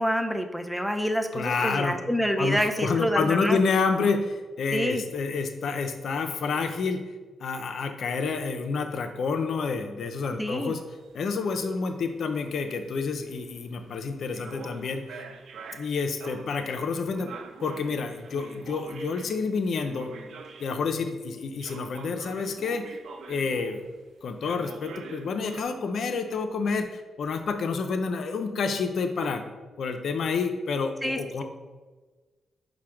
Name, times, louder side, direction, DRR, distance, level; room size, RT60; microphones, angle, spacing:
voice 1, 0.0-3.6 4.7-5.0 10.4-10.8 31.0-31.2, equal, ahead, 6 dB, 0.4 m, -27 dB
voice 2, 1.3-2.0 2.4-7.0 7.4-10.8 11.1-15.2 15.7-17.3 17.6-20.1 20.6-22.9 23.3-23.9 24.2-26.9 27.2-29.4 29.8-31.4, left 4 dB, 70° left, 6 dB, 0.4 m, -28 dB
sound 1, 10.8-21.0 21.6-24.1 24.4-25.6, right 5 dB, 75° right, 0.3 m, -46 dB
4.8 x 2.1 x 4.4 m, 1.3 s
cardioid pair, 60°, 0 cm